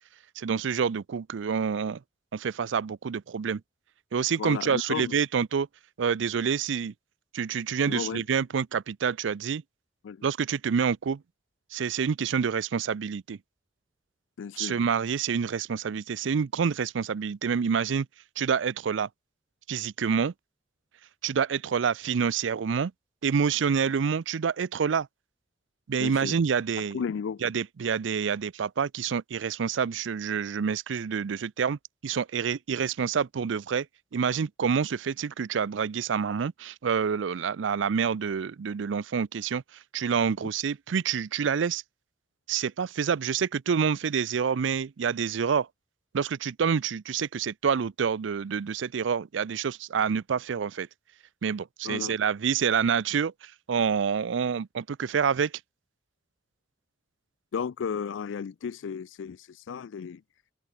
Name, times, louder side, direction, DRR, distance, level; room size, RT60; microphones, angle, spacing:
voice 1, 0.4-2.0 2.3-3.6 4.1-5.7 6.0-6.9 7.3-9.6 10.2-11.2 11.7-13.4 14.6-18.1 18.4-19.1 19.7-20.3 21.2-22.9 23.2-25.1 25.9-27.0 27.4-33.9 34.1-39.6 39.9-41.8 42.5-45.7 46.1-50.9 51.4-55.5, right 6 dB, 75° right, 0.4 m, -27 dB
voice 2, 4.4-5.2 7.9-8.2 10.0-10.3 14.4-14.8 26.0-26.4 26.9-27.4 51.8-52.2 57.5-60.2, left 6 dB, 75° left, 0.4 m, -34 dB
head